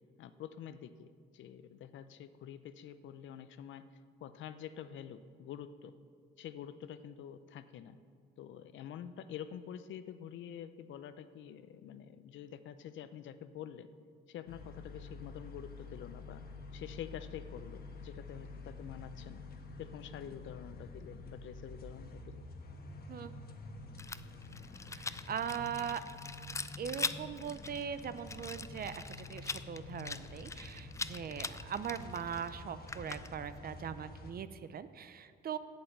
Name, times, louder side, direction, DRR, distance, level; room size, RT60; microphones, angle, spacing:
voice 1, 0.2-3.8 4.2-5.9 6.4-8.0 8.4-13.9 14.3-16.4 16.7-19.4 19.8-22.5, left 9 dB, 75° left, 12 dB, 0.6 m, -47 dB
sound 1, 14.5-34.3, left 2 dB, 50° left, 1.3 m, -49 dB
Rattle, 24.0-33.6, left 4 dB, 15° left, 0.4 m, -43 dB
voice 2, 24.9-26.0 26.8-35.6, right 8 dB, 50° right, 12 dB, 0.6 m, -40 dB
8.4 x 8.1 x 7.9 m, 2.1 s
cardioid pair, 90°, 20 cm